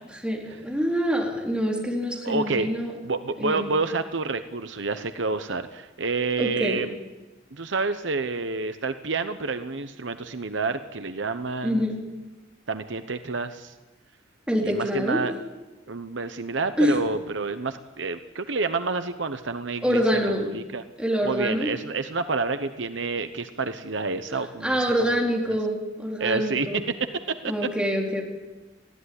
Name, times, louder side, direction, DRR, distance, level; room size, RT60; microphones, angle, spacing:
voice 1, 0.2-2.9 3.4-3.7 6.4-6.8 11.6-12.0 14.5-15.2 16.8-17.0 19.8-20.5 21.0-21.7 24.6-26.8 27.4-28.2, equal, 5° right, -2 dB, 4.1 m, -25 dB
voice 2, 2.2-2.7 3.0-6.9 7.5-11.8 12.7-13.7 14.6-15.3 15.9-20.8 21.2-25.2 26.2-26.7 27.3-27.4, right 3 dB, 65° right, 9 dB, 1.0 m, -29 dB
20.5 x 15.5 x 9.8 m, 1.2 s
head